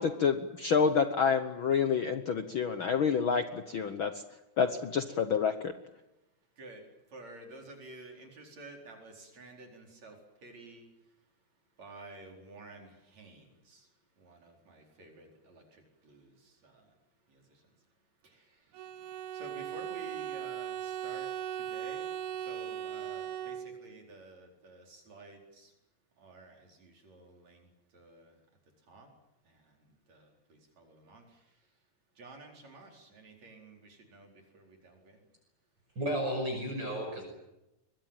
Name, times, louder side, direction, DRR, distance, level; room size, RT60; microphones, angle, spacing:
voice 1, 0.0-4.2 4.6-5.7, left 6 dB, 60° left, 1.4 m, -28 dB
voice 2, 7.1-10.1 10.4-10.8 11.8-12.9 13.2-13.4 14.2-15.6 16.1-16.2 19.4-21.3 21.7-22.0 22.5-23.5 23.8-25.7 26.2-26.5 26.8-27.6 27.9-28.2 28.9-29.1 30.8-31.2 32.2-33.8 34.1-34.3 34.5-35.1, right 2 dB, 60° right, 5.6 m, -50 dB
Bowed string instrument, 18.7-24.0, right 10 dB, 75° right, 2.4 m, -38 dB
voice 3, 36.0-37.2, equal, 35° right, 6.3 m, -33 dB
24.0 x 21.5 x 9.1 m
omnidirectional pair, 3.5 m